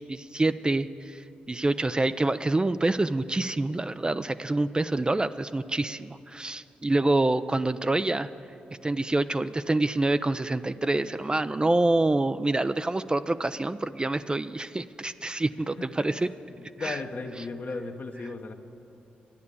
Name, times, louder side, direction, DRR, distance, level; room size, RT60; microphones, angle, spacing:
voice 1, 0.0-8.3 8.8-16.3 16.8-17.0, right 2 dB, 25° right, 12 dB, 0.4 m, -26 dB
voice 2, 16.8-18.5, left 3 dB, 55° left, 5 dB, 1.1 m, -35 dB
12.0 x 9.5 x 8.4 m, 2.7 s
supercardioid pair, 45°, 4 cm